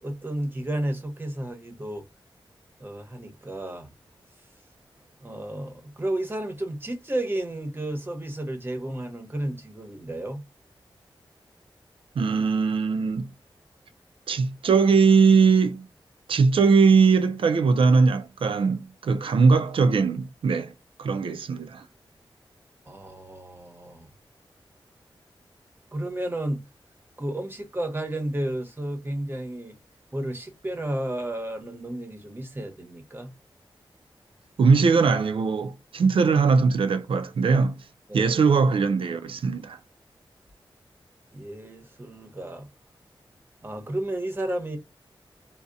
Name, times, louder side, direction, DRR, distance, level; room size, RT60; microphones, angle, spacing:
voice 1, 0.0-2.0 2.8-3.9 5.2-10.4 22.9-24.1 25.9-26.6 27.2-29.8 30.1-33.3 38.1-38.4 41.3-42.7 43.6-44.8, right 1 dB, 25° right, 0.8 m, -32 dB
voice 2, 12.2-13.3 14.3-15.9 16.3-20.7 21.0-21.8 34.6-37.7 38.1-39.8, right 5 dB, 75° right, 0.4 m, -20 dB
2.7 x 2.0 x 2.4 m
cardioid pair, 55°, 9 cm